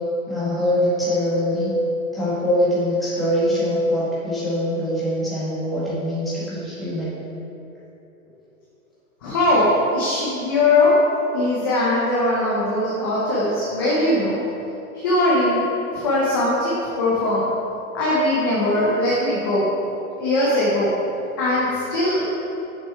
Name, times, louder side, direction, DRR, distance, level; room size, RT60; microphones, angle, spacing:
voice 1, 0.3-1.7 2.1-7.1, equal, ahead, -13 dB, 1.8 m, -23 dB
voice 2, 9.2-11.0 11.3-14.4 14.9-15.7 15.9-17.5 17.9-19.7 20.2-20.9 21.4-22.2, left 1 dB, 15° left, -7 dB, 0.7 m, -20 dB
10.5 x 7.6 x 4.4 m, 2.9 s
hypercardioid pair, 180°, 43 cm